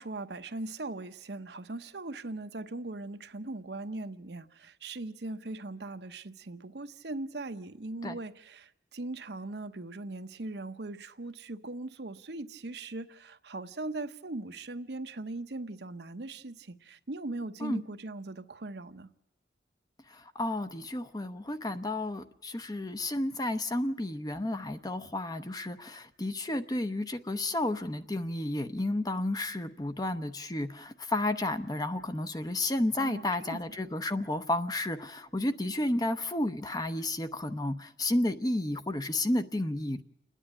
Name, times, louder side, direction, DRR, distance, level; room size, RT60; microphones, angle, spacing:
voice 1, 0.0-19.1 33.0-33.6, right 2 dB, 65° right, 0.9 m, -40 dB
voice 2, 20.1-40.0, left 1 dB, 20° left, 0.8 m, -32 dB
29.5 x 10.0 x 9.9 m
head